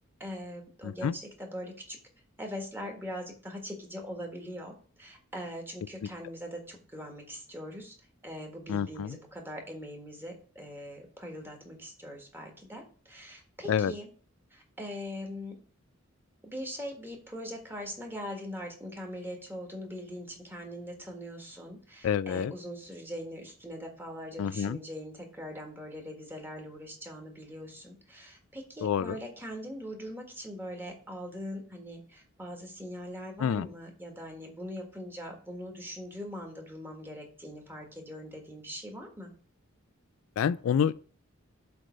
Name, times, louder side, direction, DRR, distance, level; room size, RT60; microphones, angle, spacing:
voice 1, 0.2-2.0 2.4-7.9 8.2-14.1 14.5-15.6 16.4-39.3, equal, 10° right, 1.6 m, -41 dB
voice 2, 8.7-9.1 13.7-13.9 22.0-22.5 24.4-24.8 28.8-29.2 33.4-33.7 40.4-40.9, left 8 dB, 70° left, 0.3 m, -27 dB
7.7 x 3.4 x 6.3 m
head